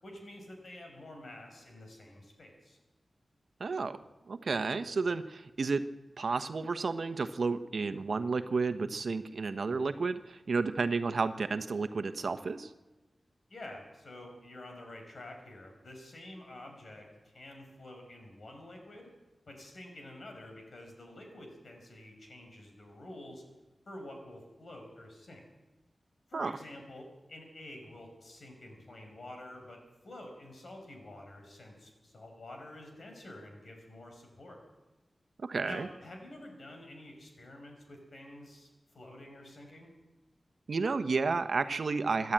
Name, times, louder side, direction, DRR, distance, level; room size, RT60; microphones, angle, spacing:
voice 1, 0.0-2.8 13.5-19.1 19.5-23.4 23.9-25.4 26.3-34.6 35.6-38.7 38.9-39.9, left 1 dB, 65° left, 3 dB, 5.4 m, -48 dB
voice 2, 3.6-4.0 4.3-5.8 6.2-12.7 26.3-26.5 35.4-35.9 40.7-42.3, right 4 dB, 70° right, 10 dB, 1.1 m, -31 dB
26.5 x 11.0 x 9.0 m, 1.1 s
wide cardioid pair, 105°, 0 cm